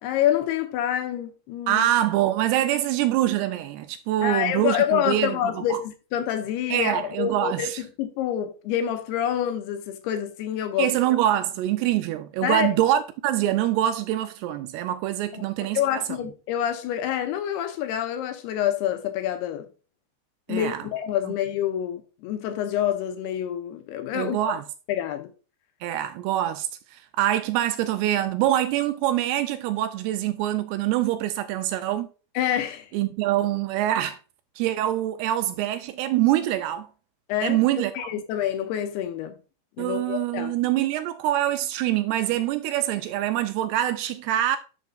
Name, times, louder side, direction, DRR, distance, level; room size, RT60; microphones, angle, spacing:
voice 1, 0.0-1.9 4.2-10.9 12.4-12.7 15.3-15.4 15.7-19.7 20.5-24.5 24.9-25.3 32.4-32.9 37.3-37.6 37.9-39.4 39.8-40.6, left 10 dB, 80° left, 2.5 m, -27 dB
voice 2, 1.7-5.8 6.7-7.8 10.8-15.8 20.5-20.8 24.1-24.6 25.8-32.1 32.9-34.2 34.6-36.9 37.4-38.1 39.8-44.6, right 13 dB, 85° right, 2.4 m, -25 dB
11.5 x 5.4 x 2.5 m
omnidirectional pair, 5.0 m